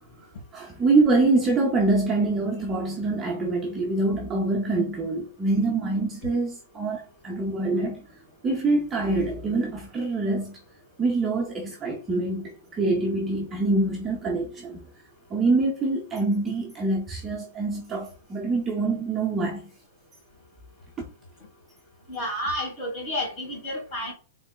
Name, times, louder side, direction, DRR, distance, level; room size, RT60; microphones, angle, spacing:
voice 1, 0.5-8.1 8.4-10.6 11.0-14.8 15.3-19.6, right 3 dB, 15° right, 0.5 m, -25 dB
voice 2, 22.1-24.1, equal, 25° left, 1.6 m, -30 dB
3.7 x 3.2 x 2.3 m
hypercardioid pair, 165°, 0 cm